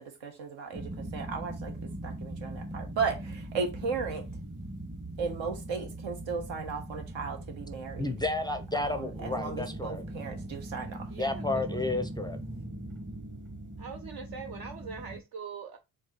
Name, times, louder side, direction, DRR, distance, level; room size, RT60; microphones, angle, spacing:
voice 1, 0.0-1.7 2.0-4.2 5.2-8.0 8.7-11.1, right 5 dB, 65° right, 1.1 m, -35 dB
sound 1, 0.7-15.2, right 1 dB, 25° right, 1.2 m, -40 dB
voice 2, 8.0-10.0 11.2-12.4, left 2 dB, 10° left, 0.5 m, -32 dB
voice 3, 11.1-11.8 13.8-15.8, right 5 dB, 45° right, 0.6 m, -42 dB
4.5 x 2.8 x 3.1 m
hypercardioid pair, 55°, 49 cm